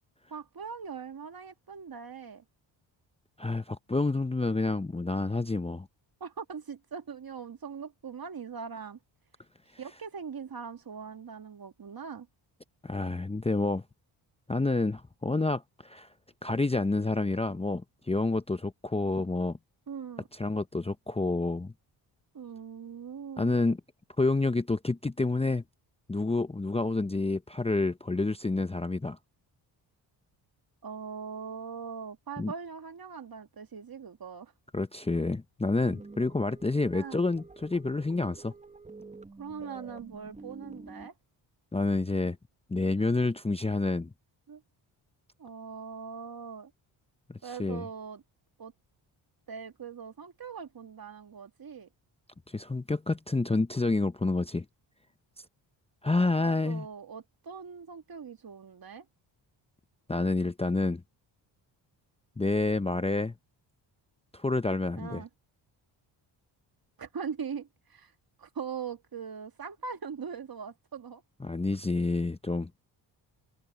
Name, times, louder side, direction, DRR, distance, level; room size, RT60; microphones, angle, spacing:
voice 1, 0.3-2.4 6.2-9.0 9.8-12.3 19.9-20.3 22.3-23.5 30.8-34.5 36.9-37.2 39.4-41.1 44.5-44.6 45.4-46.7 47.4-48.2 48.6-48.7 49.5-51.9 56.4-59.1 64.9-65.3 67.0-68.1 68.4-71.2, right 6 dB, 45° right, 2.3 m, -41 dB
voice 2, 3.4-5.9 12.8-13.8 14.5-16.1 16.4-19.6 20.3-21.7 23.4-23.8 24.2-25.6 26.1-29.2 32.4-32.5 34.7-38.5 41.7-42.4 42.7-44.1 47.3-47.8 52.5-54.6 56.0-56.9 60.1-61.0 62.4-63.3 64.3-65.2 71.4-72.7, left 3 dB, 10° left, 0.8 m, -28 dB
sound 1, 35.8-41.1, right 3 dB, 15° right, 1.1 m, -49 dB
supercardioid pair, 60°, 49 cm